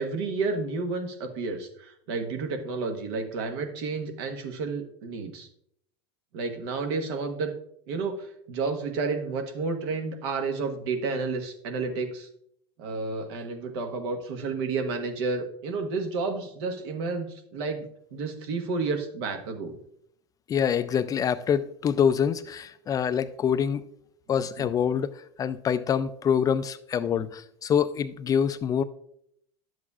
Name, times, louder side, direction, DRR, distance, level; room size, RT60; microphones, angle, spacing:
voice 1, 0.0-5.5 6.3-7.5 7.9-12.3 12.8-19.7 24.6-24.7 27.1-27.2, right 4 dB, 70° right, 1.3 m, -31 dB
voice 2, 20.5-23.8 24.3-25.1 25.4-28.8, left 8 dB, 25° left, 0.3 m, -25 dB
11.0 x 7.8 x 2.4 m
supercardioid pair, 120°, 14 cm